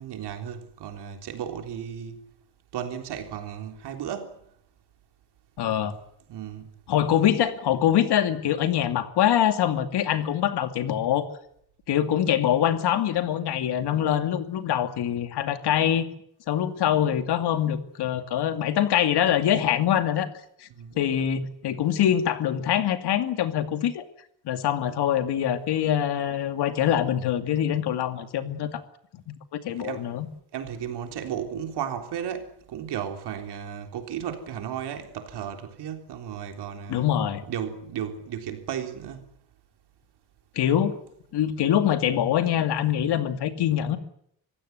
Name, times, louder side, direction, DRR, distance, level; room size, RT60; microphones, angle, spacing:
voice 1, 0.0-2.2 2.7-4.4 6.3-6.7 7.2-7.4 20.7-21.0 29.7-30.1 30.5-37.1 37.5-39.3, right 9 dB, 90° right, 3.6 m, -34 dB
voice 2, 5.6-5.9 6.9-11.3 11.9-16.1 16.5-20.3 20.6-20.7 21.0-24.0 24.4-28.8 29.5-30.3 36.9-37.4 40.6-40.9 41.3-44.0, left 10 dB, 85° left, 2.5 m, -24 dB
25.0 x 16.0 x 9.5 m
cardioid pair, 155°, 39 cm